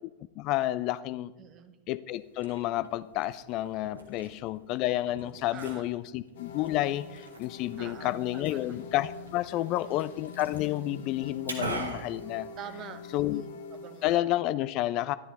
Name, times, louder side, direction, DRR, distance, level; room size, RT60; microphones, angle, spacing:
voice 1, 0.4-1.3 1.9-12.5 13.1-13.4 14.0-15.2, left 15 dB, 40° left, 16 dB, 0.3 m, -30 dB
voice 2, 1.4-1.8 5.5-6.1 7.8-8.8 9.7-10.0 12.6-14.3, right 8 dB, 35° right, 10 dB, 0.9 m, -47 dB
Liquid, 2.1-13.1, right 2 dB, 80° right, 1.6 m, -43 dB
sound 1, 6.3-14.2, left 5 dB, 55° left, 0.9 m, -45 dB
12.0 x 11.0 x 4.1 m, 1.1 s
figure-of-eight pair, 90°, 0 cm